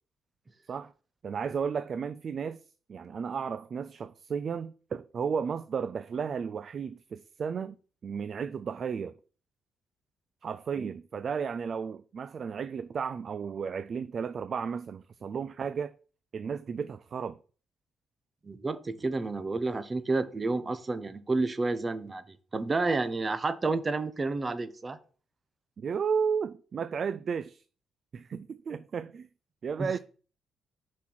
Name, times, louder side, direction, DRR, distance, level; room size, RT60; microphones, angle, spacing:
voice 1, 1.2-2.6 2.9-7.8 8.0-9.1 10.4-15.9 16.3-17.4 25.8-27.6 28.1-29.3 29.6-30.0, right 6 dB, 50° right, 0.3 m, -33 dB
voice 2, 18.4-25.0 29.8-30.0, right 3 dB, 30° right, 0.8 m, -30 dB
5.8 x 4.3 x 6.1 m
cardioid pair, 90°, 0 cm